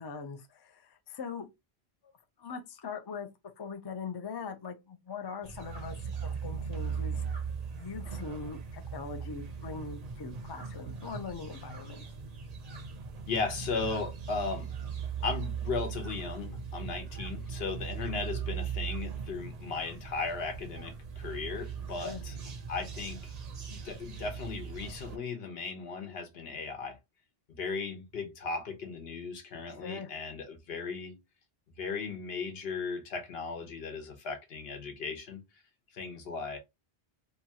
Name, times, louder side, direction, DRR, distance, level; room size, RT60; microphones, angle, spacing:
voice 1, 0.0-1.5 2.4-3.3 3.6-7.2 7.7-12.0 22.0-22.2 29.8-30.1, left 5 dB, 40° left, 0.3 m, -41 dB
sound 1, 5.4-25.2, right 6 dB, 50° right, 0.6 m, -39 dB
voice 2, 13.3-14.7 15.2-22.4 22.7-23.3 23.7-27.0 27.6-31.2 31.8-35.4 35.9-36.6, left 4 dB, 75° left, 1.0 m, -36 dB
2.8 x 2.3 x 2.7 m
omnidirectional pair, 1.0 m